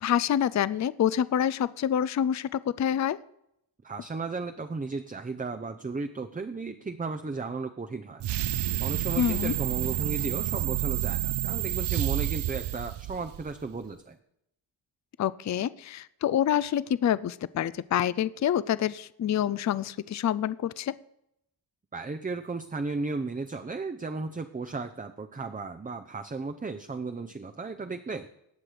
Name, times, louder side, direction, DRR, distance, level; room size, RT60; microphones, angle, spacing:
voice 1, 0.0-3.2 9.2-9.5 15.2-20.9, left 10 dB, 40° left, 18 dB, 0.4 m, -27 dB
voice 2, 3.8-8.2 8.8-14.2 21.9-28.3, right 3 dB, 20° right, 8 dB, 0.6 m, -35 dB
sound 1, 8.2-13.6, right 14 dB, 60° right, 0.5 m, -29 dB
18.0 x 6.0 x 5.0 m, 0.78 s
cardioid pair, 60°, 48 cm